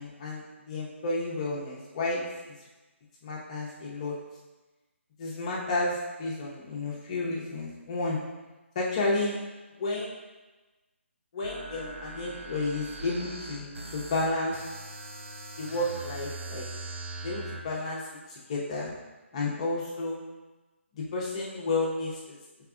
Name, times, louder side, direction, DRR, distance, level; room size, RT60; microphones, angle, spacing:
voice 1, 0.0-2.2 3.2-4.1 5.2-8.2 8.7-9.4 9.8-10.1 11.3-14.6 15.6-16.6 17.2-18.0 18.3-18.9 19.3-20.2 20.9-22.4, left 2 dB, 30° left, -5 dB, 0.7 m, -31 dB
sound 1, 11.4-17.6, right 2 dB, 70° right, 0.7 m, -41 dB
5.7 x 3.5 x 2.4 m, 1.2 s
hypercardioid pair, 160°, 7 cm